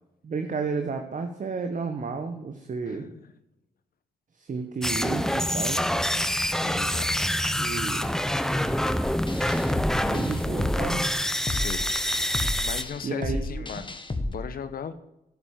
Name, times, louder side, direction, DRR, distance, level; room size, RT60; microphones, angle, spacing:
voice 1, 0.2-3.1 4.4-5.8 7.6-8.1 10.0-11.1 13.0-13.6, right 4 dB, 50° right, 6 dB, 1.3 m, -32 dB
voice 2, 2.9-3.2 6.6-7.1 11.5-11.9 12.6-14.9, left 7 dB, 65° left, 11 dB, 1.0 m, -37 dB
sound 1, 4.8-12.8, equal, 5° left, 0.9 m, -26 dB
sound 2, 9.0-14.3, left 2 dB, 30° left, 1.6 m, -32 dB
11.0 x 8.1 x 7.3 m, 0.87 s
supercardioid pair, 45°, 16 cm